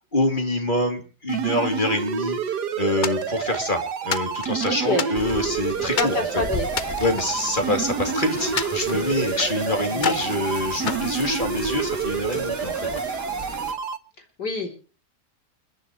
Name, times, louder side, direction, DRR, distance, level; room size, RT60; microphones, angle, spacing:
voice 1, 0.1-6.1 7.0-13.0, left 1 dB, 30° left, 4 dB, 3.1 m, -26 dB
sound 1, 1.3-14.0, right 6 dB, 75° right, 1.8 m, -28 dB
sound 2, 3.0-3.7 4.1-5.5 6.0-6.2 6.7-8.0 8.6-9.6 10.0-10.4 10.9-11.9, left 6 dB, 45° left, 0.6 m, -30 dB
voice 2, 4.6-5.1 5.8-6.7 9.8-10.5 14.4-14.7, left 2 dB, 75° left, 3 dB, 4.3 m, -28 dB
sound 3, 5.1-13.7, left 1 dB, 10° left, 2.2 m, -35 dB
29.5 x 10.5 x 3.1 m, 0.36 s
omnidirectional pair, 1.8 m